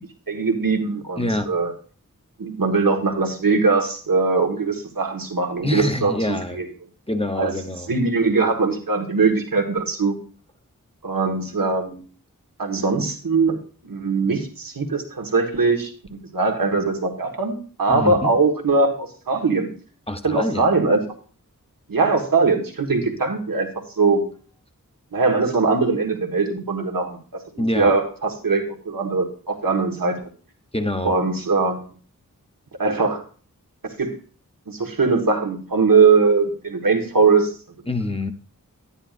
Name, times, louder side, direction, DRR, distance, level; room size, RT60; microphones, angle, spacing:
voice 1, 0.3-1.7 2.4-6.6 7.3-7.5 7.9-10.2 11.0-12.0 12.6-13.6 13.9-19.7 20.2-21.0 21.9-23.7 24.0-24.2 25.1-27.2 27.6-30.2 31.0-31.8 32.8-33.2 34.0-34.2 34.7-37.5, right 4 dB, 85° right, 2 dB, 1.4 m, -21 dB
voice 2, 1.2-1.5 5.6-6.6 7.1-7.9 17.9-18.3 20.1-20.7 27.6-27.9 30.7-31.1 37.9-38.3, left 1 dB, 15° left, 6 dB, 0.8 m, -25 dB
10.0 x 10.0 x 2.4 m, 0.39 s
wide cardioid pair, 55°, 33 cm